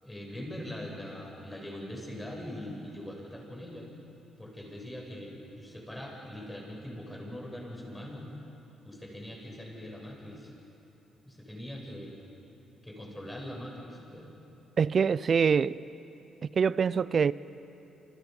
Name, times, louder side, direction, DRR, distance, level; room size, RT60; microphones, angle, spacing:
voice 1, 0.0-3.9 4.4-8.3 8.8-10.5 11.2-12.2 12.8-14.3, left 1 dB, 10° left, 7.4 m, -42 dB
voice 2, 14.8-15.8 16.6-17.3, right 6 dB, 45° right, 0.5 m, -24 dB
28.5 x 27.5 x 5.5 m
cardioid pair, 90°, 0 cm